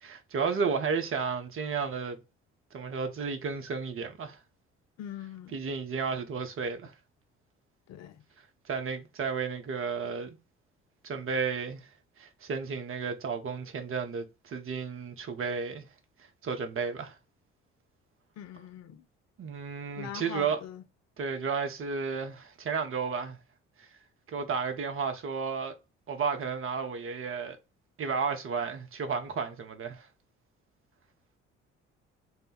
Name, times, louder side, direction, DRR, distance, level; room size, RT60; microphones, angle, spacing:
voice 1, 0.0-2.2 2.7-4.4 5.5-6.9 8.7-10.4 11.0-11.8 12.2-15.9 16.4-17.2 19.4-20.6 21.2-23.4 23.8-23.9 24.3-25.7 26.1-27.6 28.0-30.1, right 5 dB, 35° right, 0.8 m, -32 dB
voice 2, 5.0-5.6 7.9-8.2 18.4-19.0 20.0-20.8, left 10 dB, 50° left, 0.5 m, -42 dB
3.4 x 2.1 x 4.0 m
figure-of-eight pair, 45°, 35 cm